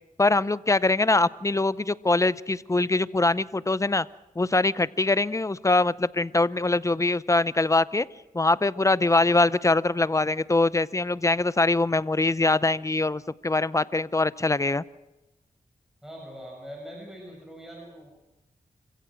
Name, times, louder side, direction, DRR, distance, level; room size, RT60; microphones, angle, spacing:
voice 1, 0.2-4.1 4.4-8.1 8.3-14.8, left 2 dB, 20° left, 18 dB, 0.6 m, -23 dB
voice 2, 16.0-18.1, equal, 5° right, -1 dB, 6.8 m, -42 dB
27.0 x 16.0 x 6.4 m, 1.0 s
cardioid pair, 60°, 15 cm